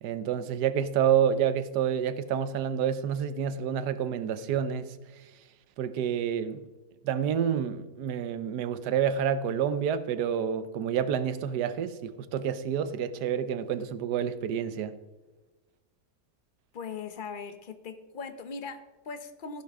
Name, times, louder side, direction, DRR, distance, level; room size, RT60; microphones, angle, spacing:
voice 1, 0.0-4.9 5.8-6.6 7.0-15.0, right 8 dB, 75° right, 1.3 m, -28 dB
voice 2, 16.7-19.6, left 5 dB, 40° left, 0.7 m, -40 dB
14.5 x 11.0 x 3.6 m
omnidirectional pair, 1.8 m